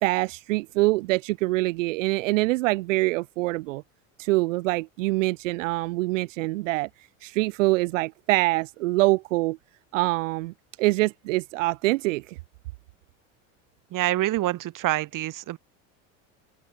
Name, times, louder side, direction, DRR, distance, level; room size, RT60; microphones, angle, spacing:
voice 1, 0.0-3.8 4.2-6.9 7.2-9.6 9.9-12.4, right 21 dB, 85° right, 1.9 m, -25 dB
voice 2, 13.9-15.6, right 15 dB, 55° right, 4.1 m, -26 dB
open air
supercardioid pair, 90°, 37 cm